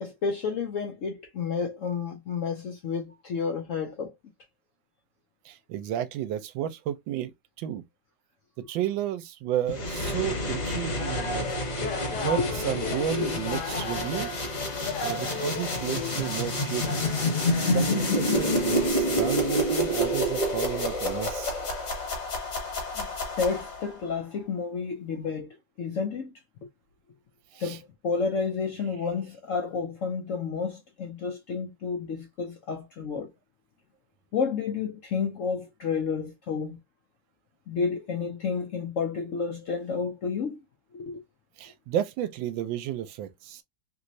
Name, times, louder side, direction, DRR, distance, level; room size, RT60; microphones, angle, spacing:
voice 1, 0.0-4.1 11.8-12.5 12.8-13.3 23.0-23.1 23.4-26.3 27.6-33.3 34.3-36.8 37.7-40.6 40.9-41.2, left 5 dB, 80° left, 0.6 m, -31 dB
voice 2, 5.5-7.3 7.6-7.8 8.6-11.5 12.2-14.5 15.0-17.1 17.7-21.5 27.5-27.8 41.6-43.6, right 11 dB, 80° right, 1.3 m, -32 dB
sound 1, 9.7-24.0, left 1 dB, 50° left, 1.5 m, -28 dB
sound 2, 11.0-18.9, left 4 dB, 65° left, 1.3 m, -36 dB
3.3 x 3.0 x 2.6 m
omnidirectional pair, 2.1 m